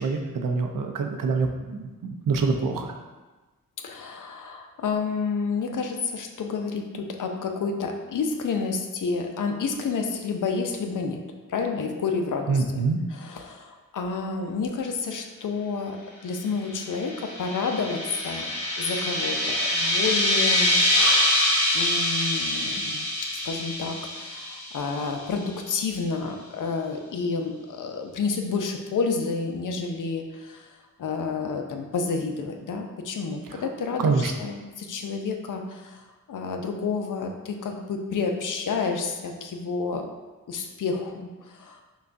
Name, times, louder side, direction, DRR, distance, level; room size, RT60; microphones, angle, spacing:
voice 1, 0.0-2.9 12.5-13.0 33.5-33.6 34.0-34.3, right 4 dB, 65° right, 4 dB, 0.6 m, -25 dB
voice 2, 3.8-11.2 11.5-12.8 13.1-18.5 18.8-20.8 21.1-21.4 21.7-40.1 40.5-41.8, left 4 dB, 60° left, 4 dB, 0.5 m, -30 dB
sound 1, 16.9-25.2, left 1 dB, 30° left, 1.3 m, -25 dB
5.3 x 2.3 x 2.5 m, 1.2 s
cardioid pair, 55°, 35 cm